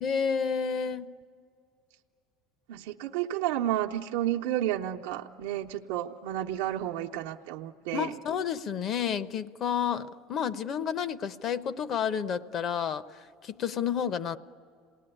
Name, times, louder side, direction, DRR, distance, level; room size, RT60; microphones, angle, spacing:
voice 1, 0.0-1.1 7.9-14.4, left 7 dB, 40° left, 14 dB, 0.8 m, -30 dB
voice 2, 2.7-8.1, right 12 dB, 85° right, 0 dB, 0.8 m, -31 dB
28.0 x 19.0 x 10.0 m, 2.5 s
cardioid pair, 130°, 0 cm